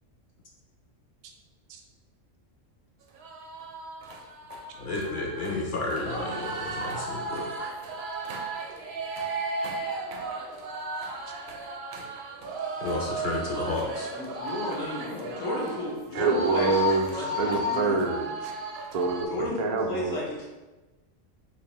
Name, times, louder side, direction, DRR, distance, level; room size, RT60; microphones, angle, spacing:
sound 1, 3.2-19.3, right 1 dB, 65° right, 0.7 m, -34 dB
voice 1, 4.8-7.7 12.8-14.1, left 2 dB, 55° left, -2 dB, 0.6 m, -31 dB
voice 2, 14.1-16.7 17.1-18.0 19.3-20.5, left 1 dB, 85° left, -4 dB, 1.3 m, -33 dB
voice 3, 16.1-18.5 18.9-20.3, right 4 dB, 85° right, 2 dB, 0.3 m, -27 dB
4.1 x 2.6 x 3.0 m, 1.1 s
omnidirectional pair, 1.3 m